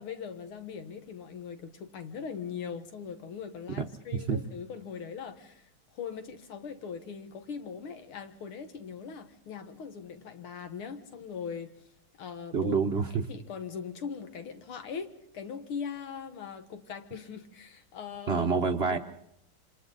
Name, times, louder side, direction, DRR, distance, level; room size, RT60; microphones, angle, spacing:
voice 1, 0.0-11.7 12.2-12.8 13.3-18.5 18.9-19.0, left 6 dB, 85° left, 2.3 m, -40 dB
voice 2, 3.8-4.4 12.5-13.3 18.3-19.0, right 5 dB, 55° right, 0.7 m, -28 dB
27.0 x 26.5 x 4.0 m
omnidirectional pair, 2.3 m